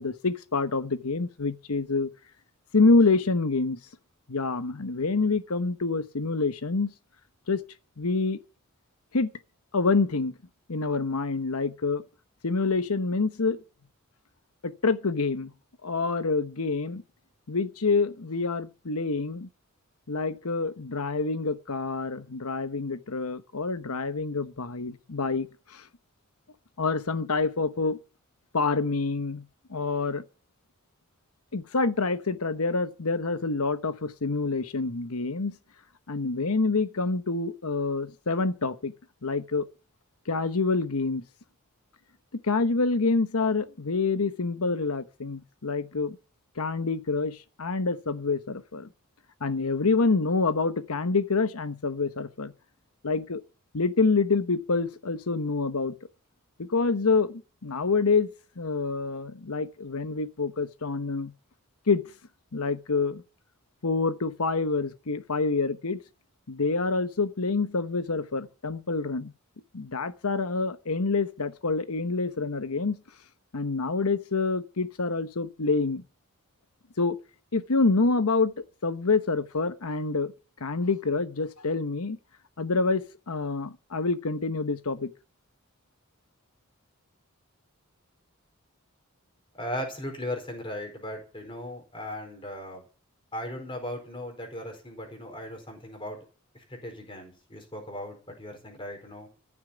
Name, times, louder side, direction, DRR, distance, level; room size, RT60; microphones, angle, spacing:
voice 1, 0.0-2.1 2.7-3.8 4.3-6.9 7.5-7.6 8.0-8.4 9.1-9.3 9.7-10.3 10.7-12.0 12.4-13.6 14.6-15.5 15.8-17.0 17.5-19.5 20.1-25.8 26.8-28.0 28.5-29.4 29.7-30.2 31.5-35.5 36.1-38.9 39.2-39.7 40.3-41.2 42.4-46.2 46.6-48.9 49.4-52.5 53.0-53.4 53.7-55.9 56.6-61.3 61.9-62.0 62.5-63.2 63.8-66.0 66.5-69.3 69.7-73.0 73.5-76.0 77.0-77.2 77.5-78.5 78.8-80.3 80.6-82.2 82.6-85.1, left 3 dB, 90° left, 1.1 m, -27 dB
voice 2, 89.6-92.8 93.3-96.2 96.5-99.3, left 1 dB, 25° left, 4.7 m, -37 dB
14.5 x 7.3 x 9.7 m
head